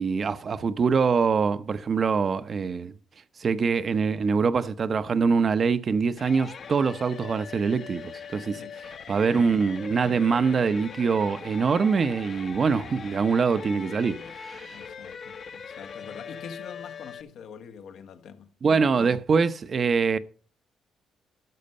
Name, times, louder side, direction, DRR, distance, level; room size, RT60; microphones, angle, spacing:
voice 1, 0.0-2.9 3.4-8.6 9.1-14.8 18.6-20.2, right 5 dB, 45° right, 0.7 m, -24 dB
sound 1, 6.2-17.2, left 6 dB, 55° left, 0.9 m, -41 dB
voice 2, 9.1-9.4 14.7-18.5, left 7 dB, 75° left, 1.1 m, -44 dB
12.0 x 6.5 x 5.4 m
cardioid pair, 90°, 0 cm